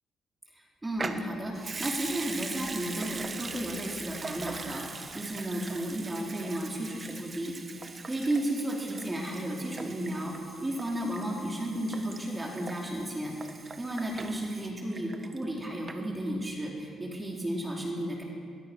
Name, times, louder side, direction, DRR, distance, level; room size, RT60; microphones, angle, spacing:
voice 1, 0.5-7.5 8.0-10.3 10.6-13.3 13.8-18.2, right 1 dB, 15° right, -2 dB, 4.4 m, -33 dB
Water tap faucet / Sink (filling or washing) / Liquid, 0.9-15.6 15.9-16.0, right 4 dB, 35° right, 1.6 m, -41 dB
23.0 x 21.0 x 6.4 m, 2.1 s
cardioid pair, 90°, 0 cm